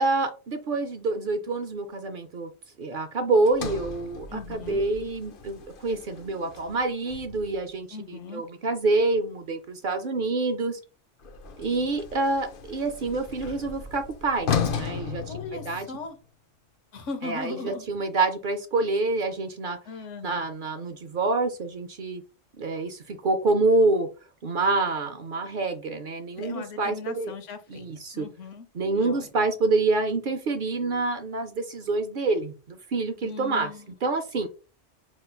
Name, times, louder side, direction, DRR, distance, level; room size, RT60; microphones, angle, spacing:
voice 1, 0.0-2.5 2.8-10.8 11.6-15.2 15.7-15.9 17.2-19.8 20.2-22.2 22.6-24.1 24.4-27.3 27.7-28.3 28.7-33.7 34.0-34.5, right 3 dB, 55° right, 8 dB, 0.6 m, -27 dB
Sliding door, 3.5-7.7 11.2-16.1, left 6 dB, 55° left, 0.7 m, -35 dB
voice 2, 4.3-4.8 7.9-8.4 15.3-16.2 16.9-17.9 19.8-20.3 26.3-27.9 28.1-28.7 28.9-29.3 33.2-33.9, left 4 dB, 85° left, 8 dB, 1.1 m, -38 dB
5.4 x 3.0 x 2.2 m, 0.32 s
omnidirectional pair, 1.2 m